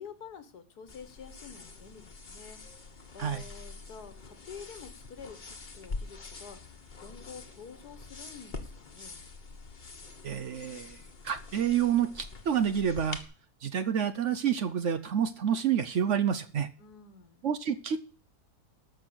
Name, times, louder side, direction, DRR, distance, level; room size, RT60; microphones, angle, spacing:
voice 1, 0.0-2.9 3.1-9.3 16.8-17.5, left 6 dB, 80° left, 11 dB, 1.9 m, -48 dB
sound 1, 0.9-13.2, left 3 dB, 30° left, 1.3 m, -45 dB
voice 2, 10.2-11.0 11.2-13.2 13.6-16.7 17.4-18.1, right 8 dB, 60° right, 13 dB, 0.9 m, -28 dB
13.0 x 6.2 x 7.9 m, 0.41 s
omnidirectional pair, 1.7 m